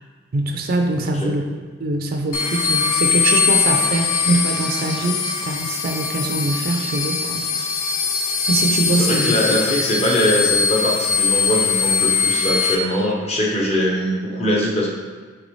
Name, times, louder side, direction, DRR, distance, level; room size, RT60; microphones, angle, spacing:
voice 1, 0.3-1.4 1.8-7.4 8.4-9.3, right 2 dB, 50° right, 3 dB, 0.3 m, -23 dB
voice 2, 1.0-1.4 8.9-14.9, equal, 30° left, -3 dB, 0.7 m, -21 dB
sound 1, 2.3-12.8, left 5 dB, 90° left, 0.5 m, -21 dB
3.9 x 3.4 x 3.1 m, 1.4 s
head